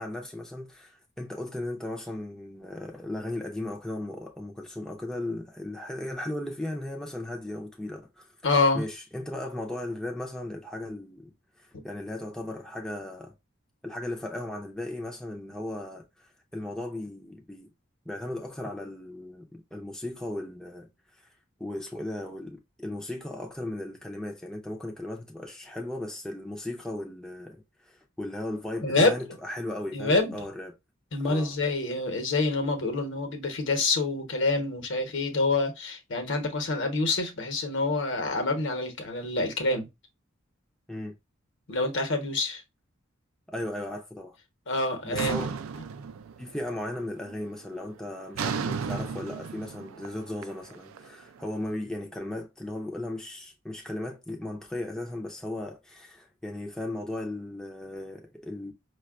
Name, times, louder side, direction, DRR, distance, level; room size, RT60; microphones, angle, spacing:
voice 1, 0.0-11.3 11.6-13.3 13.8-17.7 18.1-20.9 21.2-21.3 21.6-30.7 31.2-31.6 40.9-41.1 43.5-44.4 45.0-45.5 46.4-58.7, left 1 dB, 5° left, 0.4 m, -36 dB
voice 2, 8.4-8.8 28.8-29.1 29.9-30.4 31.1-39.9 41.7-42.6 44.7-45.4, left 3 dB, 60° left, 0.9 m, -26 dB
sound 1, 45.2-46.7 47.0-47.5 48.4-51.4, right 6 dB, 90° right, 0.4 m, -34 dB
5.1 x 2.3 x 2.3 m
head